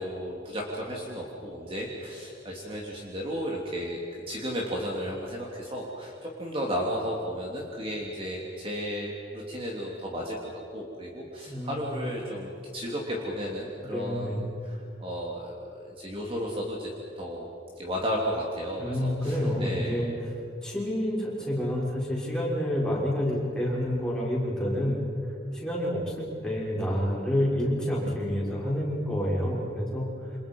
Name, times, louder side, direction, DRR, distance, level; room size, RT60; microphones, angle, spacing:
voice 1, 0.0-4.0 4.3-10.4 10.7-16.9 17.2-17.5 17.8-20.0, equal, 30° right, -3 dB, 3.1 m, -34 dB
voice 2, 13.9-14.4 18.8-20.1 20.6-25.0 25.5-30.1, equal, 5° left, -6 dB, 6.2 m, -28 dB
29.0 x 27.0 x 5.5 m, 2.6 s
head